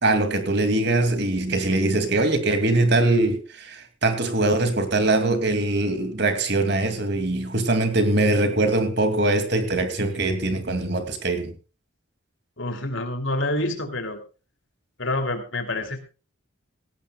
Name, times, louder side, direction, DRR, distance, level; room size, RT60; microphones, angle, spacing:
voice 1, 0.0-11.5, right 2 dB, 55° right, 2.6 m, -22 dB
voice 2, 12.6-14.2 15.0-16.0, left 1 dB, 65° left, 3.1 m, -27 dB
18.0 x 16.5 x 2.4 m
head